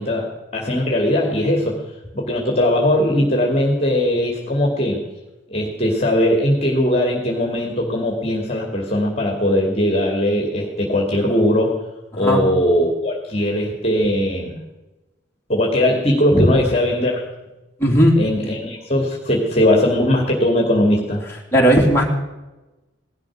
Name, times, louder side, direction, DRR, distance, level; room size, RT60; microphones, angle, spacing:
voice 1, 0.0-1.7 2.1-5.0 5.5-11.8 12.1-14.5 15.5-17.2 18.2-21.2, left 1 dB, 30° left, 1 dB, 2.4 m, -19 dB
voice 2, 17.8-18.2 21.5-22.0, equal, 10° left, -3 dB, 3.1 m, -15 dB
17.5 x 12.0 x 6.3 m, 1.1 s
head